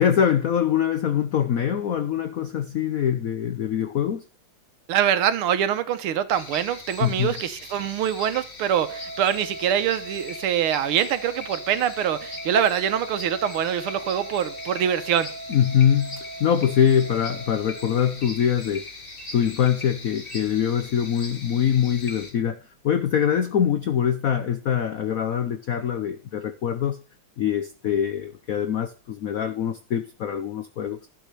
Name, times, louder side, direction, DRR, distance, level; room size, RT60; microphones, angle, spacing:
voice 1, 0.0-4.2 7.0-7.3 15.5-18.8 19.3-27.0 27.4-31.1, left 9 dB, 75° left, 0.7 m, -23 dB
voice 2, 4.9-15.3, right 9 dB, 90° right, 1.8 m, -24 dB
sound 1, 6.3-22.3, left 2 dB, 30° left, 1.7 m, -40 dB
Wind instrument woodwind instrument, 8.8-18.2, right 2 dB, 55° right, 2.2 m, -40 dB
11.5 x 4.9 x 6.7 m
omnidirectional pair, 2.3 m